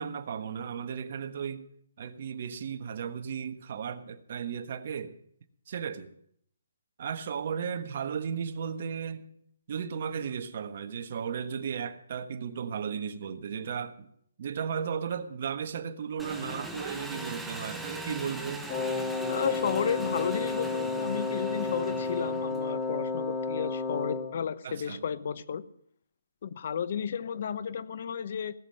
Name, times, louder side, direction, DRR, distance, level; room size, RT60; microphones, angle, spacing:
voice 1, 0.0-1.6 2.0-5.2 5.7-6.1 7.0-9.3 9.7-14.1 14.4-18.7 24.6-25.0, right 7 dB, 45° right, 1.4 m, -35 dB
Engine, 16.2-22.7, right 1 dB, ahead, 1.1 m, -41 dB
Wind instrument woodwind instrument, 18.7-24.4, left 3 dB, 25° left, 2.7 m, -32 dB
voice 2, 19.3-25.6 26.4-28.5, left 7 dB, 45° left, 1.0 m, -32 dB
18.0 x 7.5 x 8.7 m
hypercardioid pair, 165°, 0 cm